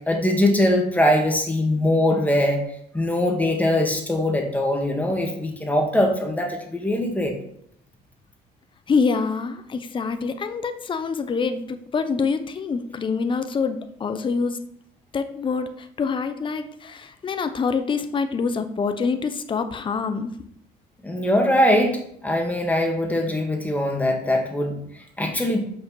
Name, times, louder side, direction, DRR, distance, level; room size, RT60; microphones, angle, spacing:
voice 1, 0.1-2.6 2.9-7.3 21.0-25.6, left 1 dB, 10° left, 2 dB, 1.7 m, -22 dB
voice 2, 8.9-14.6 15.1-20.3, left 5 dB, 30° left, 9 dB, 0.7 m, -26 dB
6.0 x 5.1 x 6.2 m, 0.69 s
cardioid pair, 110°, 17 cm